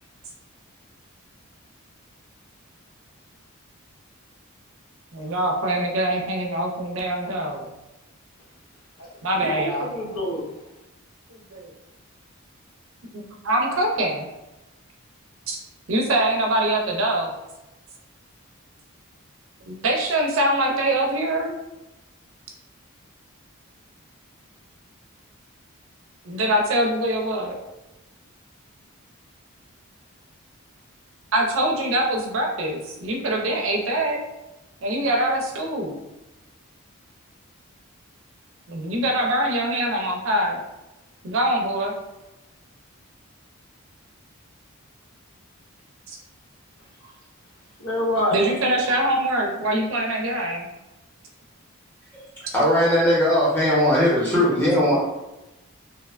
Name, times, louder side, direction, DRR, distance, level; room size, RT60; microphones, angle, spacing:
voice 1, 5.1-7.7 9.2-9.9 11.3-11.7 13.1-14.3 15.5-15.6 15.9-17.3 19.6-21.5 26.2-27.6 31.3-34.2 34.8-36.0 38.7-40.6 41.2-41.9 46.1-46.2 48.3-50.7, right 1 dB, 65° right, 1 dB, 0.5 m, -24 dB
voice 2, 9.3-10.5 47.0-47.1 47.8-48.6, equal, 90° left, -3 dB, 0.7 m, -26 dB
voice 3, 52.1-55.0, left 1 dB, 10° left, -8 dB, 0.7 m, -19 dB
2.7 x 2.1 x 2.4 m, 0.98 s
head